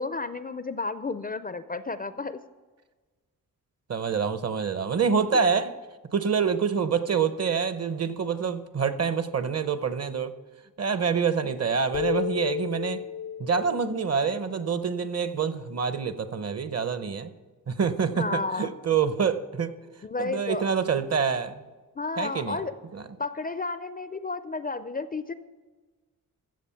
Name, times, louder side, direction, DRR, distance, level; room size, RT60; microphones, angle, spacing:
voice 1, 0.0-2.4 5.3-5.4 18.2-18.7 20.0-20.6 22.0-22.7 23.2-25.3, left 3 dB, 25° left, 12 dB, 0.4 m, -32 dB
voice 2, 3.9-5.7 6.1-10.3 10.8-13.0 13.4-17.3 17.7-19.7 20.2-21.6 22.2-22.6 22.9-23.0, right 6 dB, 45° right, 12 dB, 0.8 m, -26 dB
sound 1, 11.9-15.5, left 9 dB, 85° left, 0.6 m, -34 dB
15.0 x 7.1 x 5.7 m, 1.3 s
wide cardioid pair, 125°, 35 cm